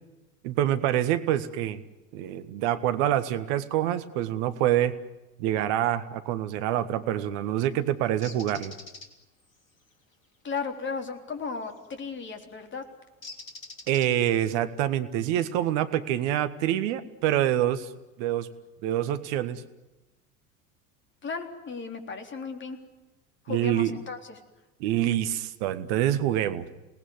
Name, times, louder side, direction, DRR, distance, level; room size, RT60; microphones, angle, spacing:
voice 1, 0.4-1.8 2.1-5.0 5.4-8.7 13.9-17.9 18.2-18.5 18.8-19.6 23.5-24.0 24.8-26.7, right 12 dB, 55° right, 11 dB, 1.7 m, -26 dB
Bird, 8.2-9.1 11.7-11.9 13.2-14.4, left 3 dB, 75° left, 3.0 m, -43 dB
voice 2, 10.4-12.8 21.2-22.8 23.5-24.4, left 4 dB, 30° left, 6 dB, 3.7 m, -35 dB
28.0 x 19.0 x 9.7 m, 1.1 s
figure-of-eight pair, 70°, 40 cm